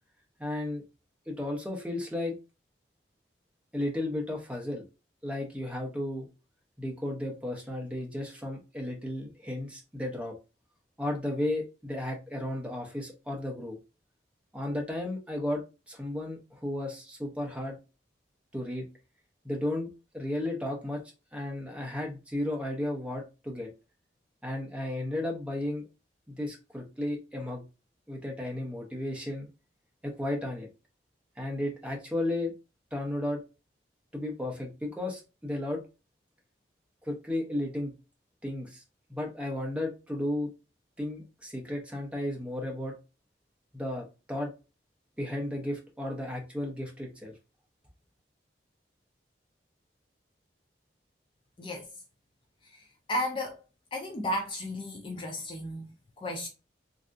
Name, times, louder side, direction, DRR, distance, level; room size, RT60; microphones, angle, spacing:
voice 1, 0.4-0.8 1.3-2.3 3.7-4.8 5.2-6.3 6.8-10.3 11.0-13.8 14.5-17.8 18.5-18.9 19.4-19.9 20.1-21.0 21.3-23.7 24.4-25.8 26.3-27.6 28.1-29.5 30.0-30.7 31.4-32.5 32.9-33.4 34.1-35.8 37.0-37.9 38.4-38.8 39.1-40.5 41.0-42.9 43.7-44.5 45.2-47.3, left 1 dB, 5° right, 0.7 m, -34 dB
voice 2, 51.6-51.9 52.6-53.6 53.9-56.5, left 1 dB, 25° left, 0.4 m, -34 dB
3.3 x 2.6 x 2.4 m
head